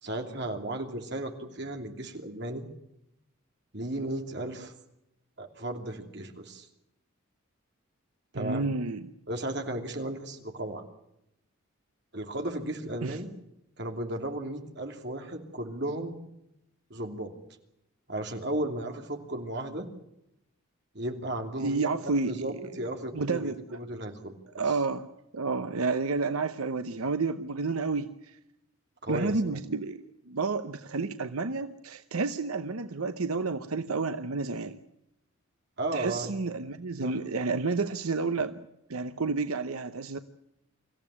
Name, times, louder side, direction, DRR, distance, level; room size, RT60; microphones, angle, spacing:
voice 1, 0.0-2.6 3.7-4.7 5.4-6.7 8.3-8.7 9.3-10.8 12.1-13.3 13.8-16.2 16.9-17.3 18.1-19.9 20.9-21.9 22.3-24.3 29.0-29.3 35.8-36.3 37.0-37.1, right 1 dB, 50° right, 4 dB, 2.8 m, -34 dB
voice 2, 8.3-9.1 13.0-13.2 21.6-22.6 23.1-23.6 24.5-25.1 25.3-28.4 29.1-34.8 35.9-40.2, right 4 dB, 85° right, 9 dB, 0.9 m, -30 dB
25.0 x 15.0 x 9.9 m, 0.85 s
head